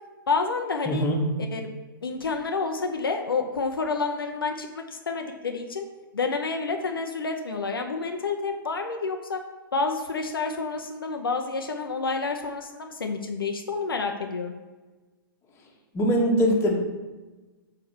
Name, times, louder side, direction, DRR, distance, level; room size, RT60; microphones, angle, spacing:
voice 1, 0.3-1.0 1.5-1.7 2.0-5.8 6.1-9.4 9.7-14.5, left 4 dB, 75° left, 4 dB, 0.7 m, -29 dB
voice 2, 0.9-1.2 15.9-16.7, equal, 20° left, -1 dB, 1.5 m, -22 dB
5.1 x 4.7 x 6.2 m, 1.2 s
figure-of-eight pair, 115°, 12 cm